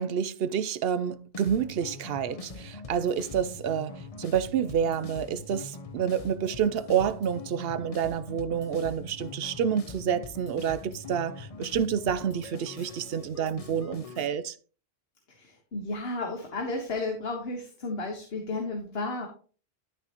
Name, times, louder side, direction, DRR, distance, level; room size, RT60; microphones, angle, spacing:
voice 1, 0.0-14.5, right 8 dB, 70° right, 0.8 m, -28 dB
sound 1, 1.3-14.3, left 3 dB, 40° left, 0.8 m, -43 dB
voice 2, 15.3-19.3, left 2 dB, 70° left, 1.5 m, -33 dB
11.5 x 6.1 x 2.9 m
omnidirectional pair, 1.1 m